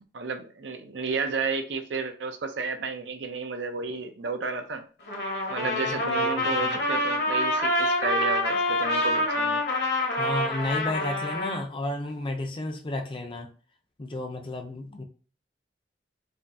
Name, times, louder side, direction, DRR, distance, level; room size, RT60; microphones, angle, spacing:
voice 1, 0.1-4.8 5.5-9.6, right 4 dB, 75° right, 0.6 m, -32 dB
Trumpet, 5.1-11.6, left 1 dB, 60° left, 1.0 m, -26 dB
voice 2, 5.8-6.8 10.2-13.5 14.0-15.0, left 1 dB, 30° left, 0.5 m, -33 dB
5.0 x 2.6 x 2.7 m
head